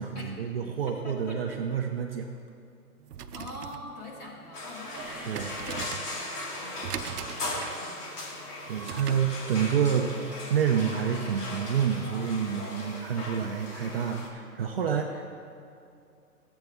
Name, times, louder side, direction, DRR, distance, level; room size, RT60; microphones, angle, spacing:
voice 1, 0.0-2.3 5.3-5.6 8.7-10.1 10.5-15.3, right 7 dB, 40° right, 1 dB, 0.6 m, -28 dB
voice 2, 1.0-1.6 3.3-8.4 9.1-9.4, left 1 dB, 20° left, -4 dB, 1.8 m, -45 dB
sound 1, 3.0-9.4, right 9 dB, 90° right, 0.7 m, -41 dB
sound 2, 4.5-14.3, left 2 dB, 80° left, 2.1 m, -38 dB
sound 3, 5.0-7.8, right 3 dB, 5° right, 0.8 m, -47 dB
14.0 x 8.0 x 3.5 m, 2.5 s
hypercardioid pair, 150°, 46 cm